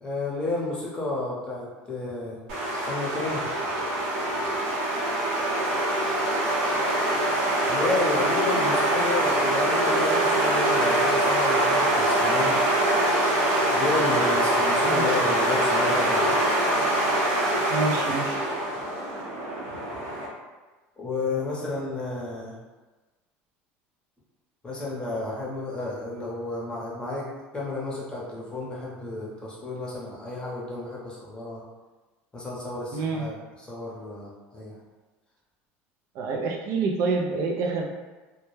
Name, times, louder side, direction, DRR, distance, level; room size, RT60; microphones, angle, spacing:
voice 1, 0.0-2.4 2.7-3.4 7.6-12.6 13.7-16.4 21.0-22.6 24.6-31.6 32.3-34.7, left 2 dB, 15° left, -5 dB, 0.7 m, -32 dB
sound 1, 2.5-20.3, right 1 dB, 80° right, 0.8 m, -24 dB
voice 2, 14.8-15.2 17.7-18.4 32.9-33.2 36.1-37.8, right 3 dB, 60° right, 1 dB, 0.3 m, -27 dB
2.2 x 2.1 x 3.1 m, 1.2 s
supercardioid pair, 120°, 6 cm